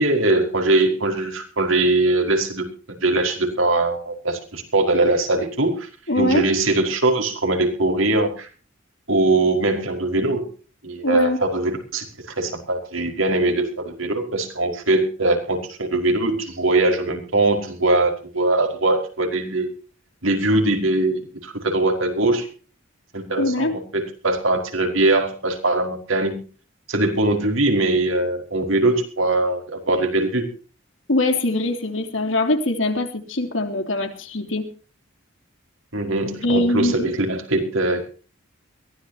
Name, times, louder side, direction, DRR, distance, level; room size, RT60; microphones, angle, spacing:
voice 1, 0.0-2.7 3.0-5.9 6.2-8.5 9.1-10.5 10.8-12.1 12.4-19.7 20.2-22.5 23.1-26.4 26.9-30.5 35.9-38.0, right 2 dB, 90° right, 4 dB, 5.2 m, -21 dB
voice 2, 6.1-6.5 11.0-11.4 23.4-23.7 31.1-34.6 36.4-37.1, left 2 dB, 70° left, 5 dB, 3.3 m, -22 dB
22.5 x 17.0 x 2.9 m, 0.38 s
head